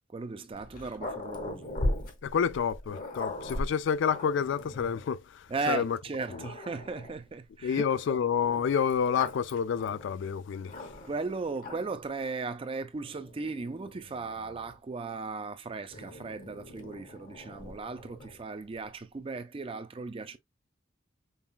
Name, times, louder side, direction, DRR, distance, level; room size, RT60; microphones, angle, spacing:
voice 1, 0.1-1.7 5.5-7.8 8.1-8.2 11.0-20.4, right 4 dB, 25° right, 0.4 m, -36 dB
Growling, 0.5-5.1 5.8-5.9 6.3-7.3 8.4-11.2 11.6-12.1 13.0-14.8 15.9-18.4, left 1 dB, 45° left, 0.9 m, -39 dB
voice 2, 2.2-6.0 7.6-10.9, left 7 dB, 65° left, 0.3 m, -29 dB
5.4 x 2.3 x 2.3 m
head